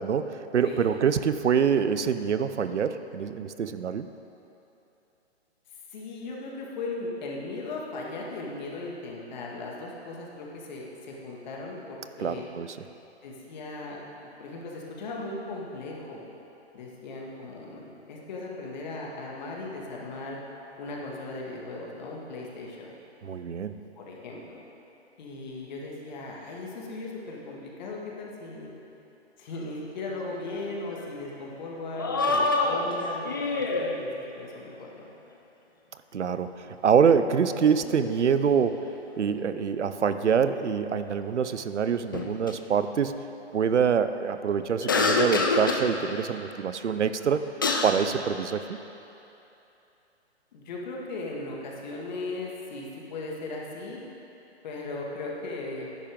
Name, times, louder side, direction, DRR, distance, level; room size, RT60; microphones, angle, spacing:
voice 1, 0.0-4.1 12.2-12.8 23.2-23.8 36.1-38.9 39.2-43.3 43.5-47.4 47.8-48.8, right 7 dB, 85° right, 11 dB, 0.7 m, -25 dB
voice 2, 5.9-12.5 13.2-16.3 16.7-20.4 20.8-22.9 24.0-24.6 25.2-28.7 29.4-35.1 50.5-54.0 54.6-55.9, left 2 dB, 40° left, -2 dB, 2.1 m, -37 dB
sound 1, 30.2-30.6 30.9-31.0 32.0-34.0 37.5-39.1 39.5-40.4 42.1-42.5 44.8-45.9 47.2-47.3 47.6-48.0, left 3 dB, 20° left, 0.4 m, -27 dB
14.0 x 10.5 x 3.7 m, 2.9 s
hypercardioid pair, 145°, 34 cm